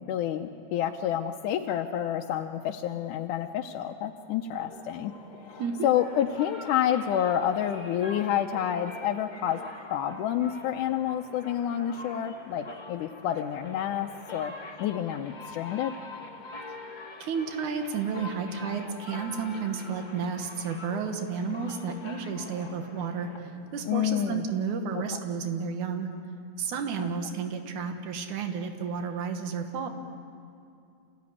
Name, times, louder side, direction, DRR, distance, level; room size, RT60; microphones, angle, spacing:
voice 1, 0.0-5.2 5.4-14.5 14.8-16.0 23.9-24.5 24.9-25.0 27.0-27.1, left 10 dB, 85° left, 3 dB, 2.3 m, -29 dB
sound 1, 4.6-24.0, left 3 dB, 20° left, 1.5 m, -45 dB
voice 2, 17.2-26.1 26.6-29.9, right 5 dB, 80° right, 5 dB, 2.9 m, -32 dB
27.5 x 16.5 x 9.8 m, 2.5 s
omnidirectional pair, 3.5 m